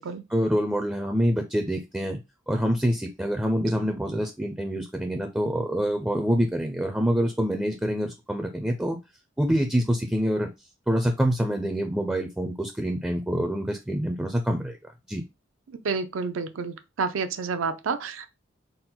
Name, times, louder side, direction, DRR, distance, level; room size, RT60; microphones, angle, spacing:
voice 1, 0.3-2.2 2.5-9.0 9.4-10.5 10.9-14.8 15.1-15.2, equal, 5° right, 0.4 m, -26 dB
voice 2, 15.8-18.3, right 5 dB, 75° right, 0.5 m, -29 dB
3.9 x 2.1 x 4.3 m
head